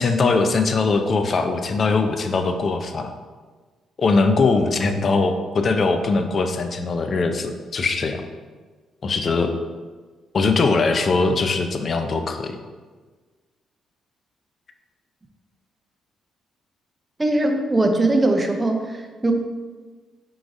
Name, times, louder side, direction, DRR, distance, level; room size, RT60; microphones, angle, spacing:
voice 1, 0.0-3.1 4.0-8.2 9.0-9.5 10.3-12.5, left 3 dB, 45° left, 6 dB, 0.4 m, -21 dB
voice 2, 17.2-19.3, right 2 dB, 20° right, 4 dB, 0.5 m, -20 dB
4.5 x 3.8 x 2.6 m, 1.4 s
cardioid pair, 90°, 0 cm